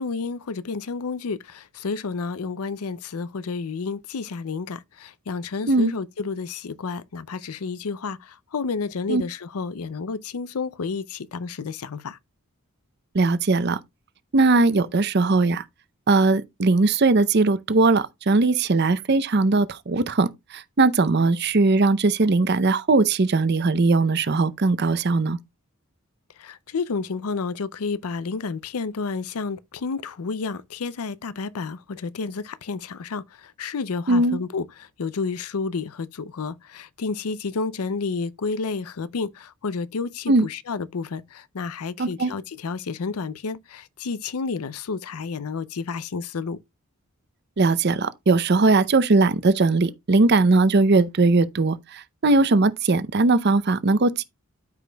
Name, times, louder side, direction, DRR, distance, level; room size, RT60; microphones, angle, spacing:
voice 1, 0.0-12.2 26.4-46.6, left 4 dB, 80° left, 0.5 m, -30 dB
voice 2, 13.1-13.8 14.3-15.6 16.1-25.4 34.1-34.4 40.3-40.5 42.0-42.3 47.6-54.2, right 3 dB, 50° right, 0.6 m, -19 dB
13.0 x 5.1 x 2.2 m
head